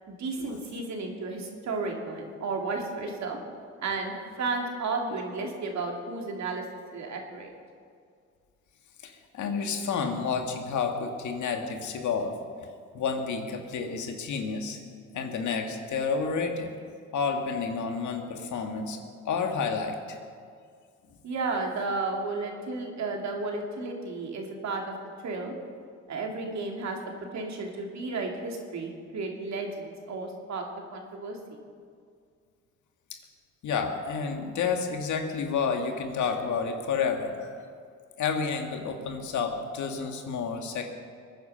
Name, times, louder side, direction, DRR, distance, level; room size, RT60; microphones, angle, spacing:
voice 1, 0.1-3.4 3.8-4.1 4.4-6.6 6.9-7.5 21.2-24.9 25.2-25.5 26.1-27.0 27.3-31.4, right 3 dB, 65° right, 1 dB, 2.8 m, -33 dB
voice 2, 9.0-12.4 12.9-14.8 15.1-16.7 17.1-19.0 19.3-20.2 33.6-37.6 38.2-40.8, left 5 dB, 75° left, 4 dB, 2.0 m, -30 dB
21.5 x 9.7 x 5.8 m, 2.2 s
cardioid pair, 90°, 30 cm